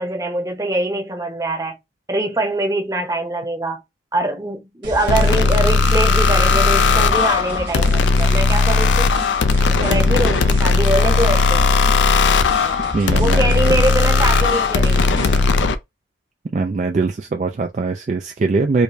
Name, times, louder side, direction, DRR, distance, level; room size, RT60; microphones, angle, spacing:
voice 1, 0.0-1.8 2.1-3.8 4.1-9.1 9.7-11.7 13.2-15.1, right 1 dB, 20° right, 0.7 m, -23 dB
sound 1, 4.8-15.5, right 1 dB, 75° right, 1.1 m, -32 dB
sound 2, 5.1-15.8, left 4 dB, 85° left, 0.4 m, -16 dB
voice 2, 12.9-13.5 16.5-18.8, right 3 dB, 40° right, 0.3 m, -21 dB
4.7 x 2.2 x 2.6 m
head